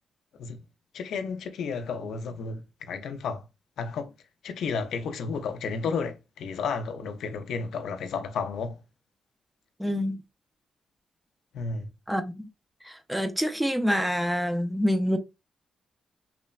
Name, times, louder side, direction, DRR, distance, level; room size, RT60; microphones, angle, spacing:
voice 1, 0.9-3.4 3.8-4.1 4.4-8.8 11.5-11.9, left 5 dB, 90° left, 0.3 m, -32 dB
voice 2, 9.8-10.2 12.1-12.4 13.1-15.2, equal, 5° right, 0.3 m, -26 dB
3.1 x 2.0 x 2.3 m
wide cardioid pair, 140°, 0 cm